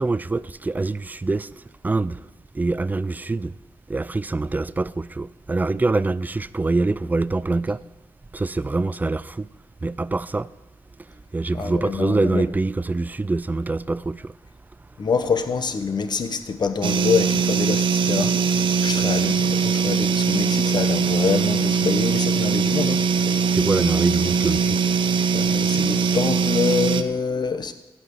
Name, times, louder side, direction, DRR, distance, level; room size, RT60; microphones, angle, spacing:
voice 1, 0.0-1.5 1.8-2.2 2.5-3.6 3.9-7.8 8.3-9.5 9.8-10.5 11.3-14.3 23.5-24.8, right 3 dB, 20° right, 0.3 m, -24 dB
voice 2, 11.5-12.5 15.0-18.4 18.8-23.3 25.3-27.7, left 5 dB, 55° left, 1.0 m, -26 dB
sound 1, 16.8-27.0, right 5 dB, 70° right, 0.7 m, -21 dB
15.0 x 5.8 x 8.4 m
wide cardioid pair, 100°, 9 cm